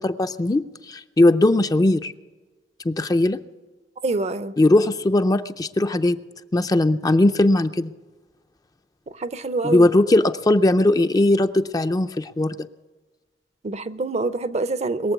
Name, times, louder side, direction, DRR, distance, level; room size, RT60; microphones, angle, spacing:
voice 1, 0.0-2.1 2.8-3.4 4.6-6.2 6.5-7.9 9.6-12.6, left 2 dB, 20° left, 0.4 m, -19 dB
voice 2, 4.0-4.5 9.2-9.9 13.6-15.1, right 3 dB, 40° right, 0.6 m, -25 dB
21.5 x 7.5 x 8.1 m
head